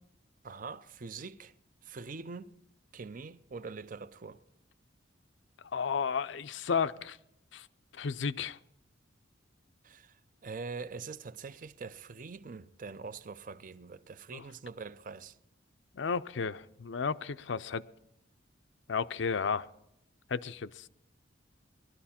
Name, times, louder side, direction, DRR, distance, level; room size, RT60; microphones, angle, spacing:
voice 1, 0.4-1.5 1.8-2.5 2.9-4.4 9.8-15.4, right 4 dB, 45° right, 0.5 m, -44 dB
voice 2, 5.7-7.2 7.5-7.7 7.9-8.6 14.3-14.4 15.9-17.8 18.9-19.7 20.3-20.9, left 5 dB, 70° left, 0.5 m, -33 dB
20.0 x 12.5 x 4.3 m
head